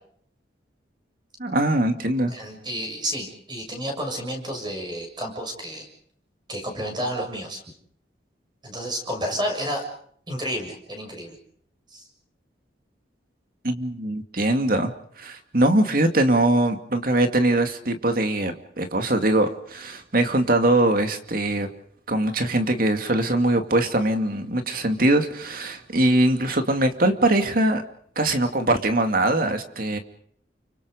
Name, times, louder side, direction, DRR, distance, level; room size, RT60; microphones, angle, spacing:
voice 1, 1.4-2.3 13.6-21.7 22.1-27.8 28.2-30.0, right 1 dB, 50° right, 6 dB, 2.4 m, -22 dB
voice 2, 2.3-5.9 6.5-7.6 8.6-9.8 10.3-11.3 11.9-12.0, equal, 25° right, 3 dB, 7.0 m, -30 dB
29.5 x 25.0 x 5.1 m, 0.64 s
head